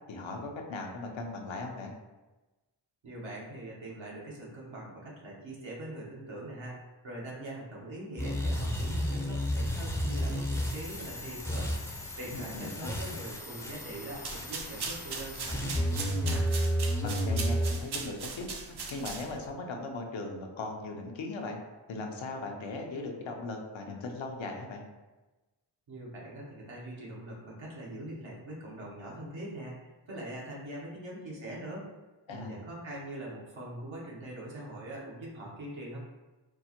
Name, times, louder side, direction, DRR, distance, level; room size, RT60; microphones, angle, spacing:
voice 1, 0.1-1.9 12.3-12.9 17.0-21.6 21.9-24.8 32.3-32.6, left 3 dB, 80° left, 2 dB, 0.7 m, -38 dB
voice 2, 3.0-16.5 25.9-31.9 32.3-36.0, right 1 dB, 80° right, -5 dB, 1.1 m, -42 dB
sound 1, 8.2-17.7, equal, 5° left, 0.4 m, -32 dB
sound 2, 14.1-19.5, right 4 dB, 60° right, 0.6 m, -39 dB
4.5 x 2.1 x 2.9 m, 1.1 s
cardioid pair, 45°, 46 cm